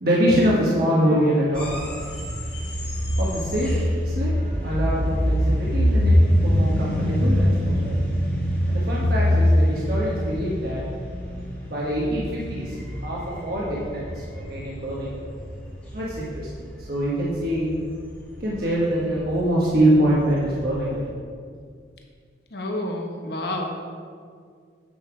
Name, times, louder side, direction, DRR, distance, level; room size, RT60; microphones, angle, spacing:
voice 1, 0.0-1.7 3.2-3.8 4.0-4.3 4.6-8.1 8.7-10.8 11.7-12.7 13.0-14.1 14.3-15.2 15.9-17.7 18.4-21.0, right 1 dB, 55° right, -6 dB, 1.3 m, -24 dB
sound 1, 1.5-21.1, equal, 10° left, 2.0 m, -25 dB
voice 2, 22.5-23.6, left 1 dB, 65° left, 2 dB, 1.1 m, -29 dB
9.0 x 5.7 x 5.0 m, 2.1 s
head